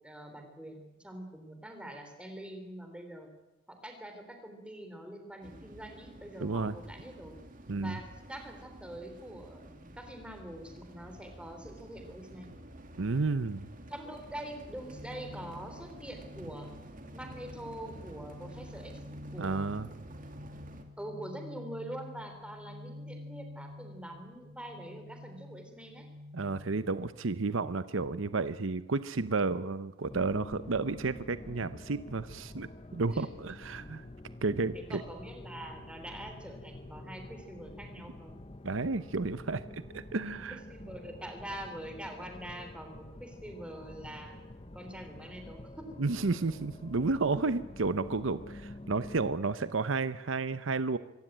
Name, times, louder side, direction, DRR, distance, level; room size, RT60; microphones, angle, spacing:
voice 1, 0.0-3.3 3.7-7.4 7.8-12.5 13.9-16.7 17.1-19.0 19.3-19.6 21.0-26.1 33.1-33.3 34.7-38.4 40.5-46.0, right 1 dB, 5° right, 5 dB, 3.7 m, -45 dB
sound 1, 5.4-20.8, right 1 dB, 45° right, 2.5 m, -50 dB
voice 2, 6.4-6.8 7.7-8.0 13.0-13.6 19.4-19.9 26.3-34.0 34.4-35.0 38.6-40.6 46.0-51.0, right 3 dB, 75° right, 14 dB, 0.8 m, -32 dB
sound 2, 14.8-27.8, left 1 dB, 90° right, 4.4 m, -49 dB
sound 3, 30.1-49.3, left 1 dB, 30° left, 0.9 m, -48 dB
25.0 x 15.5 x 9.1 m, 1.0 s
head